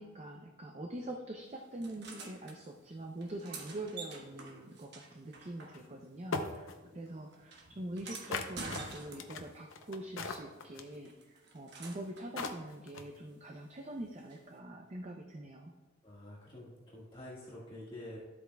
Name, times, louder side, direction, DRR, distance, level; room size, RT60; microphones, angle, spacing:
voice 1, 0.0-15.7, right 1 dB, 35° right, 2 dB, 0.5 m, -44 dB
sound 1, 1.8-2.6 3.2-6.1 6.4-9.6 11.0-12.3 14.3-14.4, right 3 dB, 55° right, 1.2 m, -48 dB
sound 2, 5.7-5.8 6.3-6.7 8.3-11.0 12.0-12.1 12.4-13.2, left 3 dB, 80° left, 0.7 m, -38 dB
voice 2, 16.0-18.2, left 1 dB, 25° left, -7 dB, 1.7 m, -48 dB
12.0 x 8.0 x 2.3 m, 1.2 s
head